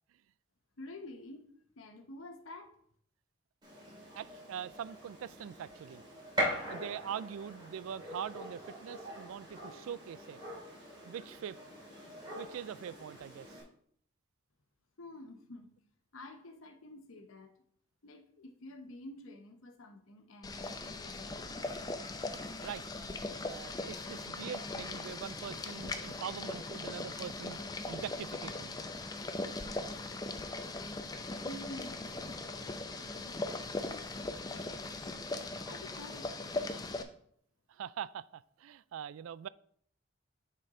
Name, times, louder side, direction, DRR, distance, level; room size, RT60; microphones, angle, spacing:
voice 1, 0.8-2.8 15.0-15.7 16.1-17.5 18.0-21.5 31.5-37.1, left 2 dB, 90° left, 0.9 m, -50 dB
Gunshot gunfire, 3.6-13.6, equal, 20° right, 2.4 m, -42 dB
voice 2, 4.1-6.0 6.7-10.4 11.0-11.6 12.4-13.5 22.6-22.8 23.4-27.6 27.9-28.8 37.7-39.5, right 8 dB, 90° right, 0.3 m, -43 dB
Boiling, 20.4-37.0, left 2 dB, 20° left, 0.5 m, -40 dB
9.7 x 4.4 x 3.7 m
head